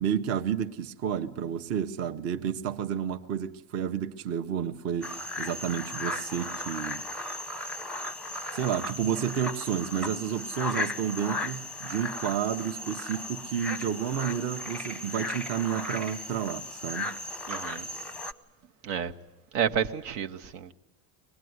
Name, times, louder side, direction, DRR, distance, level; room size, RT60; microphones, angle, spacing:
voice 1, 0.0-7.0 8.5-17.2, right 8 dB, 45° right, 0.9 m, -31 dB
sound 1, 5.0-18.3, left 1 dB, 5° left, 0.7 m, -36 dB
voice 2, 17.5-17.9 18.8-19.1 19.5-20.7, right 8 dB, 75° right, 1.2 m, -30 dB
23.5 x 19.5 x 9.5 m
cardioid pair, 140°, 35 cm